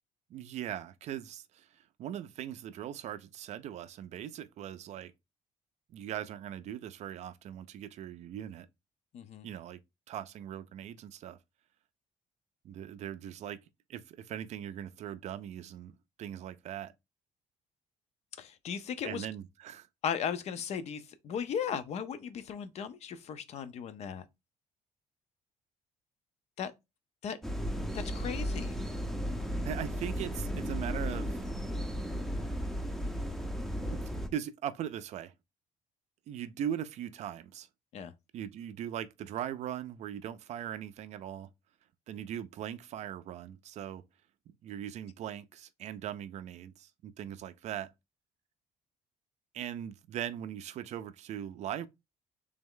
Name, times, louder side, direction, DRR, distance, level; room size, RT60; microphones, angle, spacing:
voice 1, 0.3-5.1 5.9-8.7 9.4-9.8 10.1-11.4 12.6-13.6 13.9-16.9 19.0-19.9 29.6-31.4 33.9-34.0 34.3-35.3 36.3-37.7 38.3-41.5 42.1-44.0 44.5-47.9 49.5-51.9, right 10 dB, 55° right, 0.4 m, -40 dB
voice 2, 9.1-9.5 18.4-19.3 20.0-24.2 26.6-26.7 27.2-27.4 27.9-28.8 37.9-38.1, left 7 dB, 50° left, 0.5 m, -36 dB
sound 1, 27.4-34.3, equal, ahead, 0.5 m, -35 dB
3.4 x 3.1 x 3.7 m
cardioid pair, 170°, 14 cm